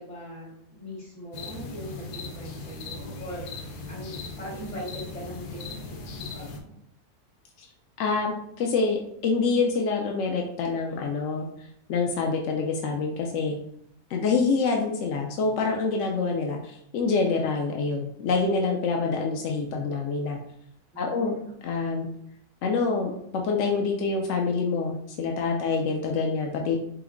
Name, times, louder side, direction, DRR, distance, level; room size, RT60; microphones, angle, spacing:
voice 1, 0.0-6.7 20.9-21.4 21.7-21.9, equal, 45° left, -6 dB, 2.2 m, -40 dB
sound 1, 1.3-6.6, left 3 dB, 80° left, 1.3 m, -39 dB
voice 2, 8.0-11.5 11.9-13.6 14.1-20.4 21.0-21.4 21.6-22.1 22.6-26.8, left 4 dB, 65° left, 1 dB, 0.7 m, -26 dB
5.7 x 2.1 x 3.7 m, 0.73 s
omnidirectional pair, 1.7 m